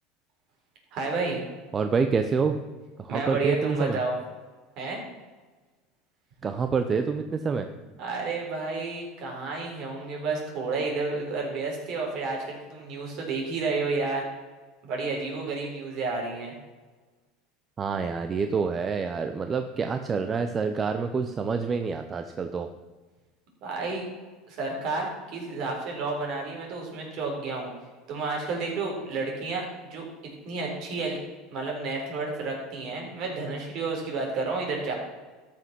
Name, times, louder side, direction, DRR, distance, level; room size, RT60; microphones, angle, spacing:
voice 1, 0.9-1.4 3.1-4.1 4.8-5.0 8.0-14.3 14.8-16.5 23.6-24.0 24.5-27.7 28.1-30.0 30.4-31.2 31.5-34.9, right 3 dB, 55° right, 0 dB, 4.2 m, -31 dB
voice 2, 1.7-2.6 3.0-4.0 6.4-7.7 17.8-22.7, right 5 dB, 25° right, 7 dB, 0.7 m, -27 dB
13.5 x 6.1 x 6.0 m, 1.3 s
supercardioid pair, 115°, 0 cm